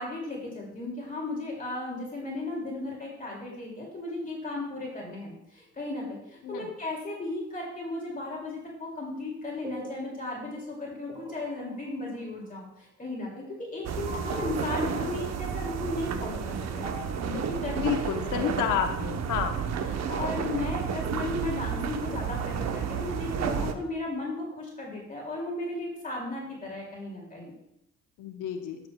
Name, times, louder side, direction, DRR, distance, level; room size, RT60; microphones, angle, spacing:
voice 1, 0.0-16.9 17.2-18.5 19.9-27.5, left 2 dB, 25° left, -2 dB, 2.4 m, -35 dB
sound 1, 9.6-12.7 14.1-16.0 16.8-17.0, right 1 dB, 20° right, 1.5 m, -45 dB
sound 2, 13.8-23.7, right 6 dB, 60° right, 0.8 m, -31 dB
voice 2, 17.8-19.5 28.2-28.8, left 8 dB, 90° left, 5 dB, 0.8 m, -30 dB
12.0 x 7.1 x 2.2 m, 0.82 s
cardioid pair, 90°, 30 cm